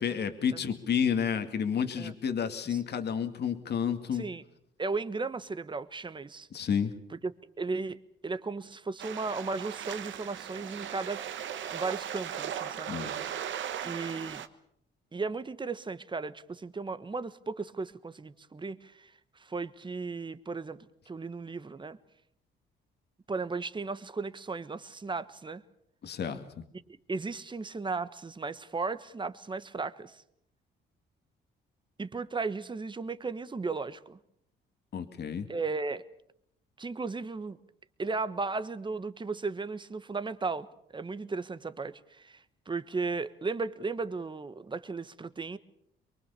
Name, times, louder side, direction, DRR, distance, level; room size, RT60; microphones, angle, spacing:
voice 1, 0.0-4.2 6.5-6.9 12.9-13.1 26.0-26.5 34.9-35.5, left 7 dB, 55° left, 8 dB, 2.2 m, -30 dB
voice 2, 4.1-4.4 4.8-6.5 7.1-11.2 11.7-13.0 13.8-14.4 15.1-22.0 23.3-25.6 26.9-30.2 32.0-34.2 35.5-36.1 36.8-37.6 38.0-45.6, right 4 dB, 25° right, 13 dB, 1.3 m, -35 dB
sound 1, 9.0-14.5, right 9 dB, 70° right, 1.4 m, -38 dB
24.0 x 23.0 x 6.9 m, 0.72 s
cardioid pair, 90°, 20 cm